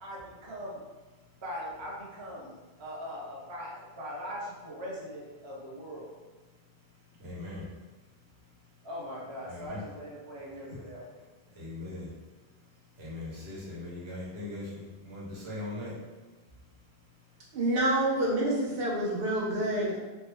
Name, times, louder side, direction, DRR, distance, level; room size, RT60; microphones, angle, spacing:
voice 1, 0.0-0.8 1.4-2.5 2.8-6.1 8.8-11.1, equal, 30° right, -4 dB, 0.6 m, -40 dB
voice 2, 7.2-7.6 9.5-9.8 11.6-12.1 13.0-14.6 15.0-15.9, left 2 dB, 85° right, -6 dB, 1.2 m, -39 dB
voice 3, 17.5-20.0, right 1 dB, 65° right, -4 dB, 1.0 m, -27 dB
3.2 x 2.1 x 3.3 m, 1.2 s
omnidirectional pair, 1.0 m